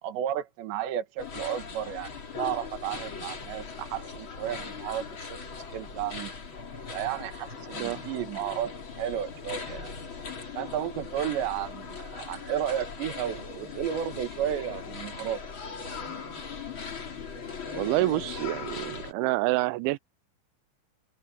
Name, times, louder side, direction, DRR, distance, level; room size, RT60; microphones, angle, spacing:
voice 1, 0.0-2.1 2.4-5.1 5.7-6.3 6.9-9.9 10.6-15.4, right 10 dB, 70° right, 4.0 m, -33 dB
sound 1, 1.2-19.1, left 5 dB, 30° left, 2.7 m, -39 dB
voice 2, 17.7-20.0, right 20 dB, 90° right, 3.0 m, -27 dB
omnidirectional pair, 5.3 m